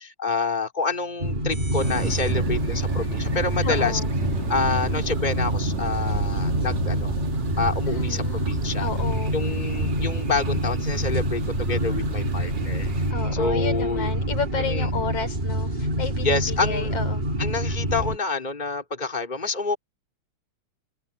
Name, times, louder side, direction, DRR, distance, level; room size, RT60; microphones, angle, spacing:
voice 1, 0.0-4.0 4.5-7.2 7.6-8.9 9.3-12.9 13.3-14.1 14.6-14.9 16.2-16.9 17.4-19.8, left 4 dB, 15° left, 4.3 m, -28 dB
sound 1, 1.2-18.2, equal, 20° right, 1.8 m, -26 dB
Thunder, 1.8-13.1, right 4 dB, 65° right, 4.2 m, -32 dB
voice 2, 3.6-4.1 7.9-9.3 13.1-17.2, left 4 dB, 55° left, 5.5 m, -32 dB
open air
omnidirectional pair, 3.4 m